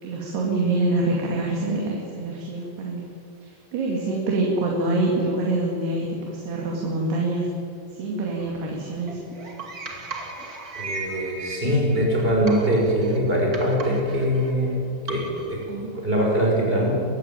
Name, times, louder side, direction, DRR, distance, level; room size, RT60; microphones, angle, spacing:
voice 1, 0.0-3.0 3.4-7.5 7.9-9.3 15.7-15.9, right 2 dB, 65° right, -1 dB, 4.4 m, -25 dB
sound 1, 8.4-15.6, right 3 dB, 30° right, 1.8 m, -37 dB
voice 2, 10.7-14.8 15.1-15.2 15.5-15.6 15.9-17.0, equal, 10° right, -2 dB, 6.2 m, -22 dB
23.0 x 16.0 x 9.3 m, 2.5 s
omnidirectional pair, 5.3 m